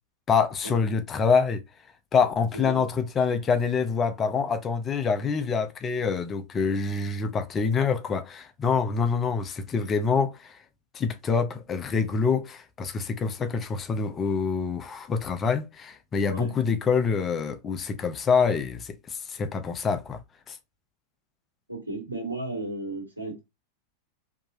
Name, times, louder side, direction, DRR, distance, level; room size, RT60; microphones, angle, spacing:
voice 1, 0.3-1.6 2.1-10.6 10.9-20.2 20.5-20.6, left 5 dB, 25° left, 0.6 m, -26 dB
voice 2, 2.5-2.8 16.3-16.5 21.7-23.4, right 2 dB, 85° right, 1.8 m, -34 dB
4.6 x 3.0 x 2.6 m
figure-of-eight pair, 90°, 0 cm